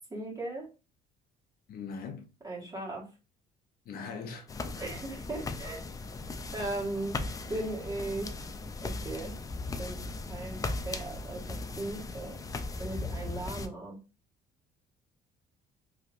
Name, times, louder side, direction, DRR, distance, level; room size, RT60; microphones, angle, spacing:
voice 1, 0.1-0.7 2.4-3.0 4.8-5.8 6.5-7.2 7.5-8.3 8.8-9.3 9.8-10.0 10.3-10.6 10.8-12.4 12.8-14.0, right 2 dB, 20° right, 1.4 m, -37 dB
voice 2, 1.7-2.3 3.9-4.8, left 5 dB, 65° left, 0.7 m, -41 dB
sound 1, 4.5-13.7, left 3 dB, 20° left, 0.3 m, -38 dB
3.3 x 2.7 x 2.5 m
cardioid pair, 110°, 17 cm